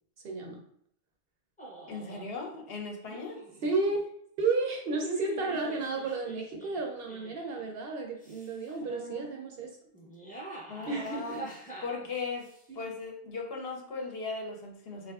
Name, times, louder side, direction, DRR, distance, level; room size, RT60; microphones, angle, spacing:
voice 1, 0.2-0.6 3.6-4.0 4.4-9.8 10.8-11.4 12.7-12.9, right 3 dB, 60° right, 1 dB, 0.7 m, -32 dB
sound 1, 1.6-2.3 3.0-3.7 4.5-7.7 8.2-8.8 9.9-12.6, right 1 dB, 10° left, 0.5 m, -45 dB
voice 2, 1.9-3.4 8.8-9.3 10.7-11.5 11.8-15.1, left 4 dB, 65° left, 1 dB, 0.8 m, -38 dB
3.6 x 2.4 x 2.3 m, 0.67 s
omnidirectional pair, 1.2 m